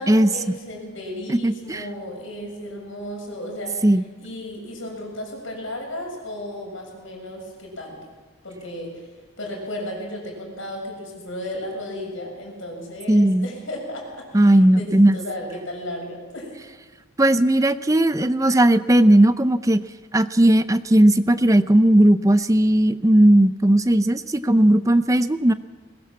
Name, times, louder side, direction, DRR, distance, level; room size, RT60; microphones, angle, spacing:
voice 1, 0.0-8.1 8.4-9.1 9.4-16.6, left 1 dB, 65° left, 1 dB, 7.0 m, -34 dB
voice 2, 1.3-1.8 3.8-4.0 13.1-13.5 14.3-15.2 17.2-19.8 20.1-25.5, right 1 dB, 15° right, 12 dB, 0.6 m, -17 dB
21.0 x 18.5 x 7.3 m, 1.3 s
head